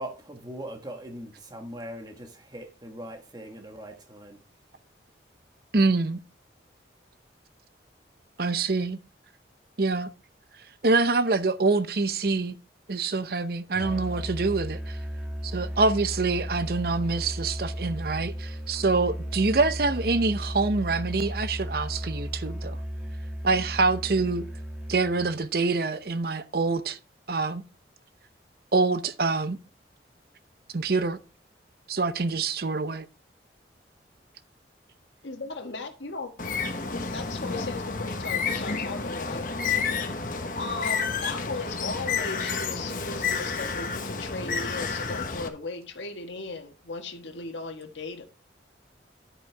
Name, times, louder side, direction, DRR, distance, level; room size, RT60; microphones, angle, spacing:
voice 1, 0.0-4.4, right 1 dB, 20° right, 1.4 m, -40 dB
voice 2, 5.7-6.2 8.4-9.0 9.8-10.1 10.8-12.6 12.9-15.0 15.4-22.8 23.4-24.4 24.9-27.0 27.3-27.6 28.7-29.6 30.7-31.2 31.9-33.1, right 3 dB, 55° right, 0.7 m, -25 dB
Musical instrument, 13.7-25.5, equal, 5° right, 1.4 m, -35 dB
voice 3, 35.2-36.3 36.9-39.7 40.4-48.3, left 3 dB, 80° left, 1.5 m, -37 dB
Bird, 36.4-45.5, left 5 dB, 45° left, 1.1 m, -30 dB
10.0 x 8.5 x 3.4 m
head